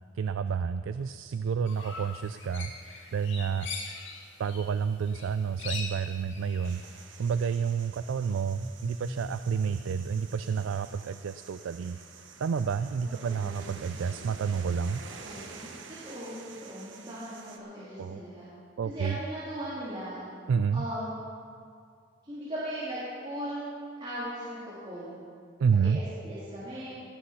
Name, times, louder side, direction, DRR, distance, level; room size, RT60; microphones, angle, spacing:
voice 1, 0.2-2.7 3.1-3.7 4.4-6.8 7.2-12.0 12.4-15.0 18.0-18.2 18.8-19.2 20.5-20.8 25.6-26.0, right 6 dB, 90° right, 11 dB, 0.4 m, -29 dB
sound 1, 1.7-4.8 5.0-7.0, left 4 dB, 70° left, 1.9 m, -41 dB
sound 2, 6.6-17.6, right 5 dB, 70° right, 1.2 m, -49 dB
sound 3, 8.5-11.3, left 1 dB, 35° left, 3.5 m, -43 dB
voice 2, 13.0-13.7 15.1-15.8 16.0-18.5 18.8-20.2 20.7-21.3 22.2-23.7 24.0-25.2 25.7-26.9, equal, 25° right, -12 dB, 3.2 m, -38 dB
18.0 x 8.3 x 5.7 m, 2.2 s
head